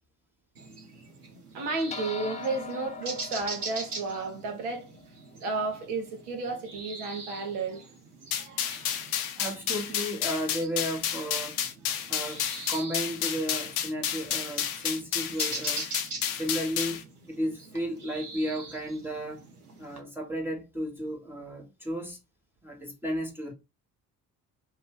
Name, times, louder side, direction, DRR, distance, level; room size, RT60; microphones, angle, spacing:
sound 1, 0.6-20.0, right 3 dB, 90° right, 0.5 m, -43 dB
voice 1, 1.5-4.9 5.4-7.8 8.4-8.9, right 3 dB, 65° right, 0.9 m, -33 dB
sound 2, 1.9-6.6, left 4 dB, 15° left, 0.5 m, -43 dB
sound 3, 8.3-17.0, left 9 dB, 65° left, 0.6 m, -31 dB
voice 2, 9.4-11.6 12.1-15.9 16.3-19.4 19.8-22.2 22.6-23.5, equal, 5° right, 1.0 m, -33 dB
2.6 x 2.2 x 3.4 m
figure-of-eight pair, 45°, 45 cm